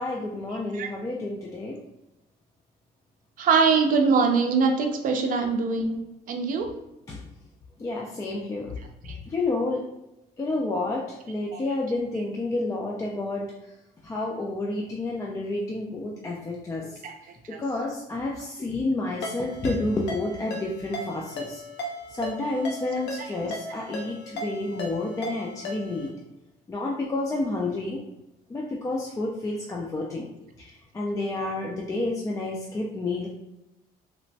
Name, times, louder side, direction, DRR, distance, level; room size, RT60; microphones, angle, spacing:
voice 1, 0.0-1.8 7.1-7.2 7.8-8.8 9.3-9.9 10.4-13.5 14.0-17.0 17.6-21.6 22.1-26.1 26.7-28.0 28.5-30.3 30.6-33.3, left 2 dB, 20° left, -2 dB, 0.4 m, -30 dB
voice 2, 3.4-6.0 6.3-6.7 9.0-9.2 11.5-11.6 16.8-17.1 17.5-17.6, right 5 dB, 55° right, 4 dB, 0.5 m, -23 dB
Ringtone, 19.2-26.1, left 1 dB, 80° left, 0.7 m, -37 dB
3.0 x 2.1 x 2.6 m, 0.92 s
cardioid pair, 110°, 17 cm